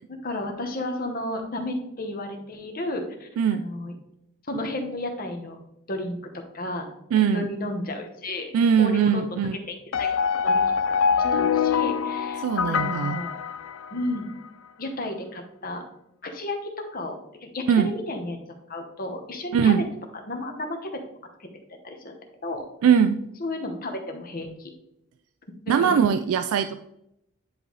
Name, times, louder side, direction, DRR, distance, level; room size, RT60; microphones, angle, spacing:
voice 1, 0.1-3.9 4.5-5.6 5.9-6.9 7.3-8.5 8.8-9.4 9.7-10.6 10.9-11.1 11.3-13.3 13.9-14.3 14.8-15.8 16.2-18.4 18.7-19.7 20.3-21.0 21.4-21.5 21.8-22.2 22.4-22.7 23.4-24.7 25.7-26.0, left 1 dB, 40° left, 4 dB, 1.0 m, -33 dB
voice 2, 7.1-7.5 8.5-9.6 12.4-13.2 17.7-17.9 19.5-19.8 22.8-23.2 25.7-26.8, right 7 dB, 75° right, 9 dB, 0.3 m, -21 dB
sound 1, 9.9-14.2, left 6 dB, 60° left, 0.3 m, -24 dB
9.9 x 4.0 x 3.1 m, 0.80 s
head